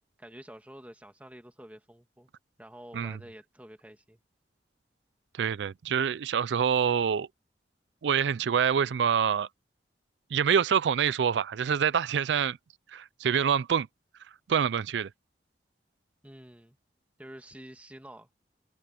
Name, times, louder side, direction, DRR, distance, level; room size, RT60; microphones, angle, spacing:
voice 1, 0.2-2.3 2.6-4.2 16.2-16.8 17.2-18.4, equal, 10° right, 2.1 m, -48 dB
voice 2, 5.3-7.3 8.0-9.5 10.3-12.6 12.9-13.9 14.5-15.1, right 7 dB, 85° right, 0.4 m, -26 dB
head